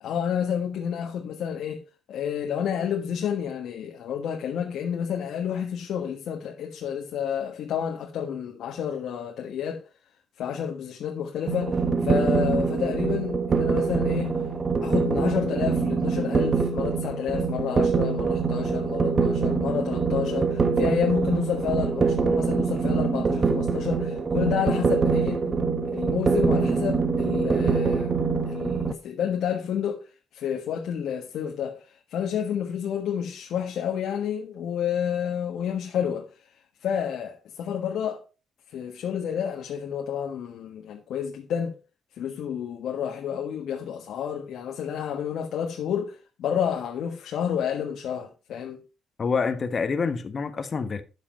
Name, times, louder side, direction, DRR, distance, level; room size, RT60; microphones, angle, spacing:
voice 1, 0.0-1.8 2.1-9.8 10.4-14.4 14.8-25.6 25.9-30.0 30.3-36.3 36.8-38.2 38.7-41.8 42.1-48.8, left 8 dB, 75° left, 1.5 m, -30 dB
sound 1, 11.5-28.9, right 4 dB, 40° right, 1.5 m, -24 dB
voice 2, 49.2-51.0, left 5 dB, 40° left, 1.3 m, -27 dB
9.8 x 7.5 x 4.5 m
cardioid pair, 90°, 0 cm